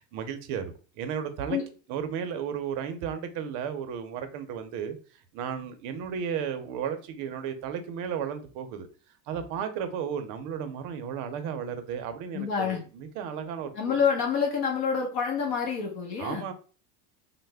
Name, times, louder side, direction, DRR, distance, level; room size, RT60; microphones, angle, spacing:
voice 1, 0.0-1.6 1.9-5.0 5.3-8.9 9.3-14.0 16.2-16.5, right 7 dB, 45° right, 0.6 m, -34 dB
voice 2, 12.3-12.8 13.7-16.4, left 6 dB, 50° left, 0.9 m, -27 dB
3.2 x 2.1 x 3.3 m
supercardioid pair, 130°, 48 cm